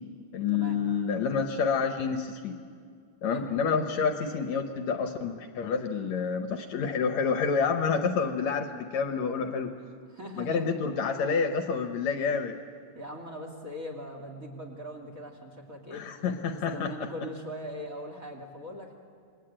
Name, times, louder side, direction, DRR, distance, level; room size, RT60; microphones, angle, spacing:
voice 1, 0.3-2.6 3.2-9.7 10.4-12.6 15.9-16.9, left 5 dB, 65° left, 6 dB, 2.2 m, -28 dB
voice 2, 9.8-10.8 12.9-16.1 16.7-18.9, equal, 25° right, 2 dB, 2.8 m, -40 dB
28.5 x 21.5 x 8.8 m, 2.2 s
omnidirectional pair, 3.8 m